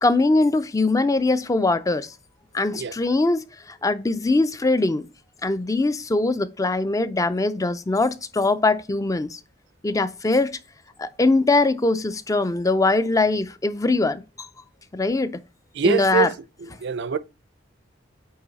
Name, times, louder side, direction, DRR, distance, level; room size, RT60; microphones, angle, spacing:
voice 1, 0.0-2.1 2.5-5.0 5.4-9.4 9.8-10.6 11.0-14.5 14.9-15.4 15.8-16.3, left 2 dB, 15° left, 0.4 m, -22 dB
voice 2, 15.7-16.3 16.6-17.2, right 5 dB, 65° right, 0.5 m, -24 dB
8.7 x 3.1 x 4.0 m
head